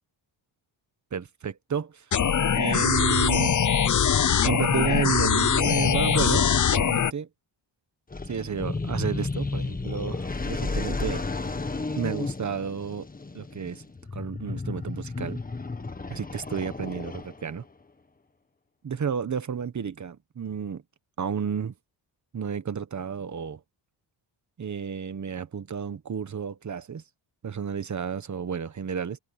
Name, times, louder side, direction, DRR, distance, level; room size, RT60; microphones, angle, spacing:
voice 1, 1.1-2.0 2.5-3.6 4.4-7.3 8.3-11.2 12.0-13.1 13.3-13.8 14.1-15.4 16.1-17.6 18.8-20.8 21.2-21.7 22.3-23.6 24.6-27.0 27.4-29.2, right 7 dB, 40° right, 1.2 m, -31 dB
sound 1, 2.1-7.1, left 8 dB, 40° left, 0.9 m, -22 dB
sound 2, 8.1-17.6, left 3 dB, 20° left, 1.5 m, -33 dB
open air
wide cardioid pair, 150°, 47 cm